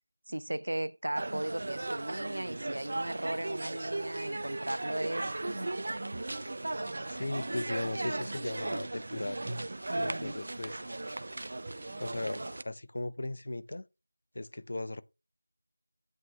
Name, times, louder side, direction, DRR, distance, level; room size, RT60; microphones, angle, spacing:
voice 1, 0.3-5.9 9.9-10.4, right 1 dB, 75° right, 0.9 m, -37 dB
sound 1, 1.1-12.6, right 2 dB, 30° right, 0.5 m, -37 dB
sound 2, 6.7-12.2, right 2 dB, 15° right, 1.0 m, -49 dB
voice 2, 7.1-9.4 9.9-10.8 12.0-13.9 14.3-15.0, left 2 dB, 35° left, 0.6 m, -37 dB
10.5 x 8.0 x 3.2 m
figure-of-eight pair, 180°, 0 cm